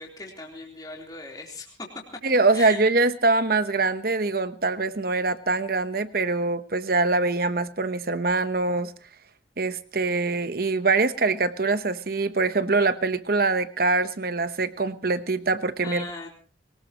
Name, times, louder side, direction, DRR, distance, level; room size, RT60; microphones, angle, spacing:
voice 1, 0.0-2.0 2.5-2.8 15.8-16.3, left 3 dB, 20° left, -1 dB, 3.6 m, -38 dB
voice 2, 2.2-8.9 9.6-16.1, right 3 dB, 50° right, 12 dB, 1.0 m, -24 dB
23.0 x 19.5 x 3.0 m, 0.38 s
head